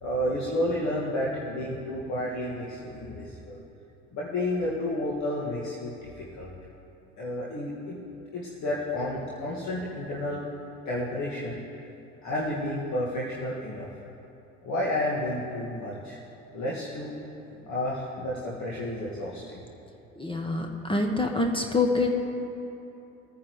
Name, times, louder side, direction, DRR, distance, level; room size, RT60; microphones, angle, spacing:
voice 1, 0.0-3.6 4.1-6.5 7.2-8.0 8.3-10.4 10.9-11.6 12.2-13.9 14.6-16.2 16.5-17.2 17.7-19.6, left 1 dB, 45° left, -6 dB, 2.1 m, -31 dB
voice 2, 20.2-22.1, left 2 dB, 15° left, 2 dB, 1.2 m, -26 dB
21.5 x 9.6 x 3.2 m, 2.9 s
hypercardioid pair, 70°, 39 cm